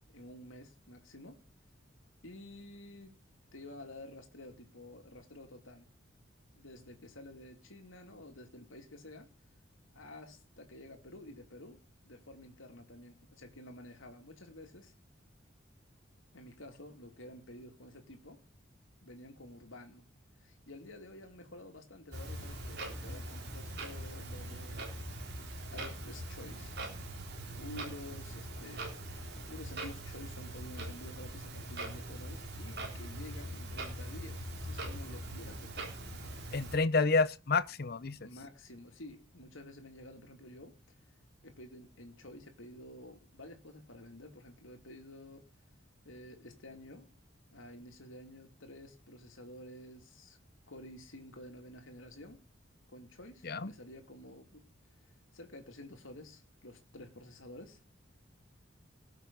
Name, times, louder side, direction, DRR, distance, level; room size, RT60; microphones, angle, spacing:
voice 1, 0.1-1.4 2.2-3.2 3.5-5.9 6.5-9.3 9.9-14.9 16.3-18.4 19.0-20.0 20.4-25.0 25.7-26.8 27.6-28.9 29.1-36.0 38.2-40.8 41.4-45.5 46.0-47.1 47.5-50.4 50.7-52.4 52.9-54.6 55.3-57.8, left 1 dB, 80° left, 2.7 m, -51 dB
Clock, 22.1-36.8, right 1 dB, 55° right, 3.6 m, -42 dB
voice 2, 36.5-38.3 53.4-53.7, left 4 dB, 50° left, 0.7 m, -29 dB
20.0 x 7.4 x 4.0 m
head